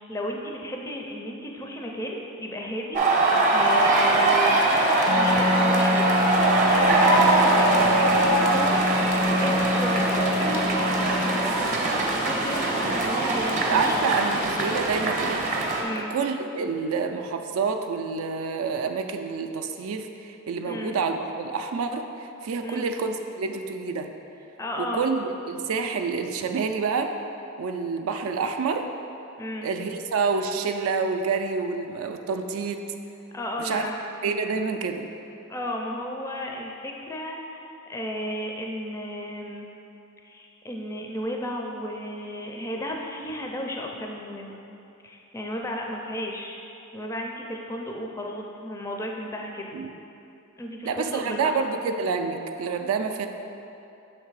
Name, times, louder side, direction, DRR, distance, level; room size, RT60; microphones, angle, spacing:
voice 1, 0.1-4.6 5.1-6.2 6.5-8.8 9.3-10.9 12.3-14.4 15.8-16.2 20.6-20.9 22.6-22.9 24.6-25.1 29.4-29.7 33.3-34.0 35.5-39.7 40.2-44.6 45.0-46.6 46.9-49.8 50.6-51.6, left 1 dB, 15° left, 0 dB, 0.4 m, -34 dB
sound 1, 2.9-15.8, right 2 dB, 35° right, 0.7 m, -22 dB
Wind instrument woodwind instrument, 5.1-11.5, left 1 dB, 80° left, 0.8 m, -26 dB
voice 2, 13.6-15.4 16.1-24.1 24.8-27.1 27.6-28.9 29.6-32.8 33.6-33.9 34.2-35.1 49.7-49.9 50.8-53.3, right 5 dB, 70° right, 6 dB, 0.3 m, -28 dB
6.5 x 3.3 x 4.7 m, 2.8 s
head